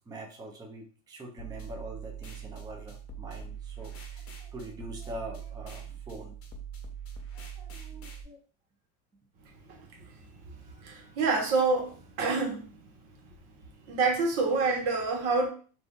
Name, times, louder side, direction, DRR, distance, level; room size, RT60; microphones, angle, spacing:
voice 1, 0.1-6.4 7.3-8.4, right 1 dB, 10° right, 0.5 m, -44 dB
sound 1, 1.4-8.2, right 7 dB, 35° left, 0.9 m, -42 dB
voice 2, 10.8-12.7 13.9-15.5, right 4 dB, 70° right, 1.3 m, -27 dB
2.7 x 2.4 x 3.6 m
supercardioid pair, 100°, 42 cm